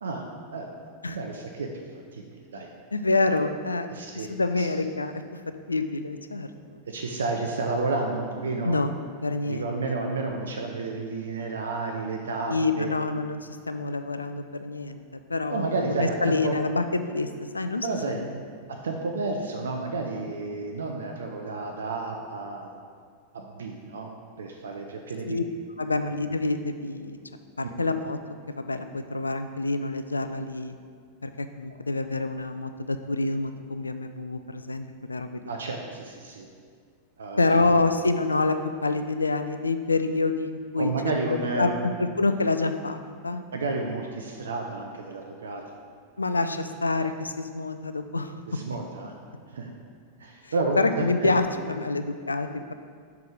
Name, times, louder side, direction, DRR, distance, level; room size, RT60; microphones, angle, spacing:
voice 1, 0.0-0.7 1.1-1.8 2.1-2.7 3.9-4.3 4.6-4.7 6.9-8.8 9.5-13.0 15.5-16.5 17.8-18.2 18.8-22.7 23.3-24.1 24.4-25.4 35.5-36.5 37.2-37.4 40.8-41.8 43.5-45.6 48.5-49.1 49.5-49.7 50.2-51.3, right 3 dB, 70° right, 2 dB, 0.5 m, -31 dB
voice 2, 2.9-3.9 4.1-5.2 5.7-6.8 8.6-9.0 9.2-10.0 12.5-13.4 13.7-17.3 17.5-18.2 25.2-25.4 25.8-27.2 27.6-28.2 28.5-30.8 31.2-35.4 37.4-40.9 41.6-43.4 46.2-48.3 50.4-52.7, left 3 dB, 80° left, 9 dB, 0.3 m, -27 dB
6.1 x 4.6 x 5.0 m, 2.1 s
figure-of-eight pair, 90°, 0 cm